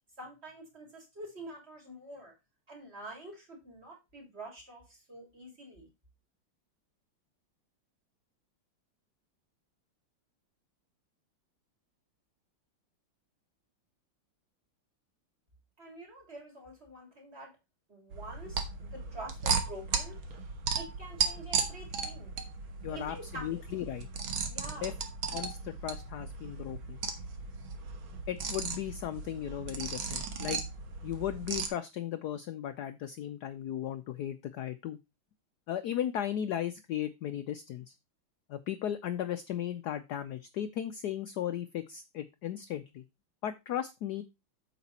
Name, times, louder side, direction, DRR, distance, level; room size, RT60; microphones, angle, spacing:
voice 1, 0.2-2.3 2.7-5.9 15.8-17.5 17.9-20.2 20.7-22.3 22.9-23.6 24.5-24.9, right 1 dB, 30° right, 0 dB, 3.6 m, -47 dB
sound 1, 18.1-31.7, right 5 dB, 70° right, 2.1 m, -36 dB
voice 2, 22.8-24.1 24.8-24.9 25.3-27.0 28.3-30.6 31.0-35.0 35.7-37.9 38.5-43.0 43.4-44.2, left 11 dB, 70° left, 10 dB, 1.0 m, -36 dB
8.5 x 6.9 x 4.2 m, 0.24 s
omnidirectional pair, 2.3 m